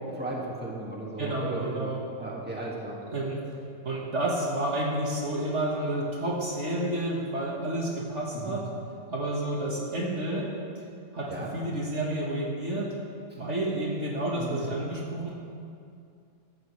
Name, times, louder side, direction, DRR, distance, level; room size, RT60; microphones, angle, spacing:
voice 1, 0.2-1.9 2.2-2.9 8.3-8.5 11.3-11.5 14.4-14.6, right 2 dB, 5° right, -4 dB, 1.9 m, -35 dB
voice 2, 1.2-2.0 3.1-3.4 3.8-8.7 9.1-10.5 11.1-12.9 13.4-15.3, right 1 dB, 55° right, -3 dB, 1.8 m, -30 dB
16.0 x 12.5 x 3.2 m, 2.4 s
omnidirectional pair, 1.5 m